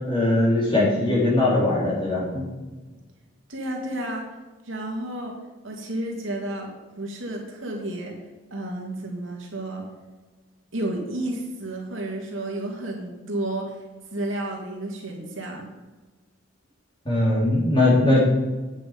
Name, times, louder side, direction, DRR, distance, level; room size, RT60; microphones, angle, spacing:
voice 1, 0.1-2.4 17.1-18.2, left 2 dB, 25° left, -5 dB, 3.9 m, -20 dB
voice 2, 3.5-4.3 4.7-5.4 5.6-8.2 8.5-9.9 10.7-13.8 14.1-15.7, right 1 dB, 65° right, 0 dB, 2.4 m, -31 dB
9.4 x 8.7 x 5.2 m, 1.2 s
head